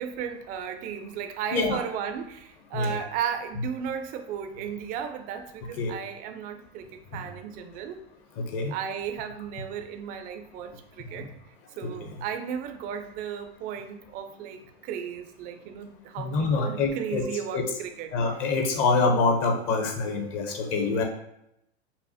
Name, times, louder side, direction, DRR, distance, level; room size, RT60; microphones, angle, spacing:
voice 1, 0.0-8.0 8.7-11.3 11.7-18.5, right 8 dB, 25° right, 7 dB, 0.3 m, -35 dB
voice 2, 1.5-1.8 2.7-3.0 5.8-5.9 8.4-8.7 11.8-11.9 16.2-17.2 17.5-17.6 18.1-21.0, left 3 dB, 40° left, 3 dB, 0.7 m, -25 dB
5.4 x 2.0 x 2.7 m, 0.80 s
hypercardioid pair, 105°, 33 cm